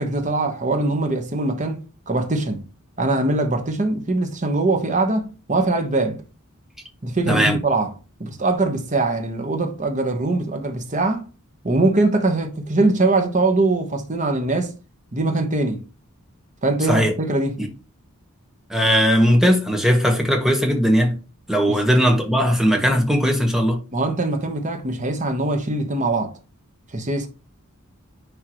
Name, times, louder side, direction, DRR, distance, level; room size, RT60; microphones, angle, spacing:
voice 1, 0.0-2.6 3.0-6.2 7.0-7.9 8.2-11.3 11.6-14.7 15.1-15.8 16.6-17.5 21.7-21.8 23.9-26.3 26.9-27.3, right 2 dB, 35° right, 1.1 m, -22 dB
voice 2, 7.3-7.6 16.9-17.1 17.6-17.7 18.7-21.2 21.5-23.8, equal, ahead, 1.2 m, -18 dB
9.8 x 3.7 x 3.1 m
head